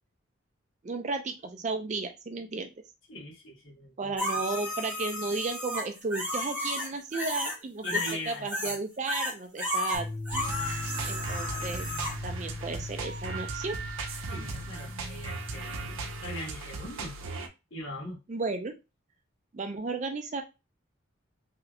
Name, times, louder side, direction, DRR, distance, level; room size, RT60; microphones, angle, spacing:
voice 1, 0.8-2.7 4.0-10.1 11.1-11.9 12.2-13.8 18.3-18.7 19.5-20.4, right 3 dB, 35° right, 6 dB, 0.4 m, -34 dB
voice 2, 3.1-4.1 7.8-8.8 10.6-10.9 14.3-16.0 16.2-17.1 17.7-18.2, left 1 dB, 65° left, -2 dB, 1.3 m, -41 dB
sound 1, 4.2-7.6 7.8-8.8 9.0-12.2 15.7-15.8, left 1 dB, 5° right, 1.6 m, -33 dB
sound 2, 9.9-16.2, left 2 dB, 85° left, 1.2 m, -39 dB
sound 3, 10.3-17.5, right 4 dB, 75° right, 0.6 m, -38 dB
3.2 x 2.9 x 2.4 m, 0.26 s
head